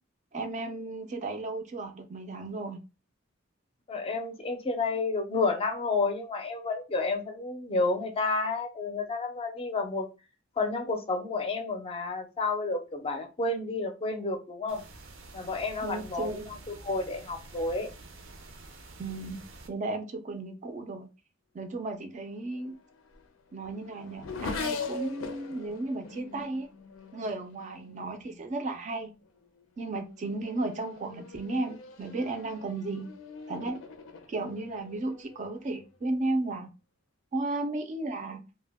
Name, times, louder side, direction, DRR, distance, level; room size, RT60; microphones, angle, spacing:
voice 1, 0.3-2.8 15.8-16.5 19.0-19.4 19.7-21.1 21.5-22.8 23.5-26.7 27.1-29.1 29.8-33.1 33.5-33.8 34.3-36.7 37.3-38.4, right 2 dB, 40° right, 0.4 m, -34 dB
voice 2, 3.9-10.1 10.6-14.8 15.3-16.6 16.8-17.9, left 3 dB, 30° left, 0.4 m, -30 dB
sound 1, 14.7-19.7, right 2 dB, 85° right, 0.6 m, -48 dB
Race car auto racing / Accelerating revving vroom, 22.6-28.4 29.2-29.6 30.0-36.0, left 4 dB, 90° left, 0.5 m, -42 dB
2.1 x 2.0 x 3.4 m
head